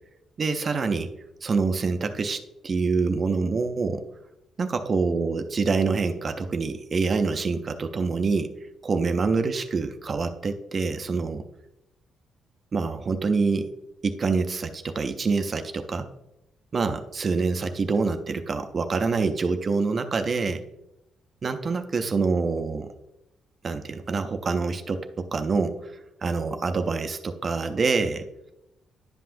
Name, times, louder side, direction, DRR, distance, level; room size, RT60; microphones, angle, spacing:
voice 1, 0.4-1.1 1.4-4.0 4.6-8.5 8.8-11.4 12.7-13.7 14.0-16.1 16.7-20.6 21.4-22.9 23.6-28.2, right 4 dB, 35° right, 8 dB, 0.4 m, -26 dB
10.5 x 5.6 x 2.5 m, 0.90 s
cardioid pair, 145°, 0 cm